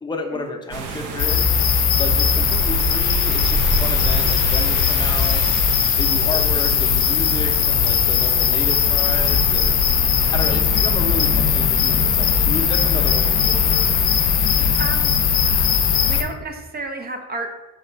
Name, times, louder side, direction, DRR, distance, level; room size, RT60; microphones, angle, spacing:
voice 1, 0.0-1.5 2.0-5.4 6.0-9.8 10.3-14.1, left 3 dB, 15° left, 2 dB, 0.6 m, -31 dB
sound 1, 0.7-16.2, right 2 dB, 85° right, 0.6 m, -29 dB
sound 2, 1.2-16.2, left 8 dB, 80° left, 0.5 m, -19 dB
voice 2, 14.6-15.1 16.0-17.5, right 2 dB, 30° right, 4 dB, 0.5 m, -31 dB
4.1 x 2.4 x 4.3 m, 1.1 s
cardioid pair, 90°, 30 cm